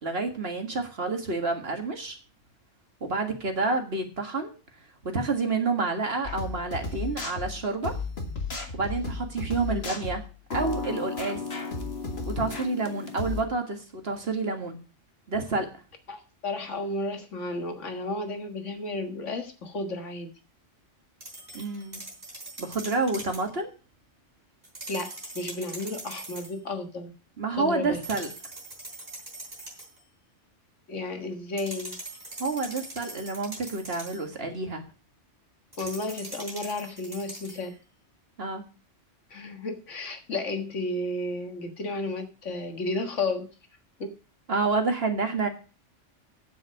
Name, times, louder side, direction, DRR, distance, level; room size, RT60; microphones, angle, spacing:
voice 1, 0.0-2.2 3.0-4.5 5.0-7.9 8.7-10.2 10.5-11.4 12.3-14.8 15.3-15.7 21.5-22.0 22.6-23.7 27.4-28.3 32.4-34.8 38.4-38.6 44.5-45.5, right 3 dB, 55° right, 5 dB, 2.1 m, -29 dB
sound 1, 6.2-13.4, left 4 dB, 60° left, 2.0 m, -34 dB
voice 2, 16.1-20.3 24.9-27.1 27.5-28.0 30.9-32.0 35.8-37.7 39.3-43.5 44.0-44.1, left 2 dB, 80° left, 6 dB, 1.9 m, -33 dB
sound 2, 21.2-23.5 24.6-26.6 28.0-30.0 31.6-34.3 35.7-37.7, right 2 dB, 35° right, 3.9 m, -42 dB
9.0 x 7.6 x 6.4 m, 0.34 s
omnidirectional pair, 1.2 m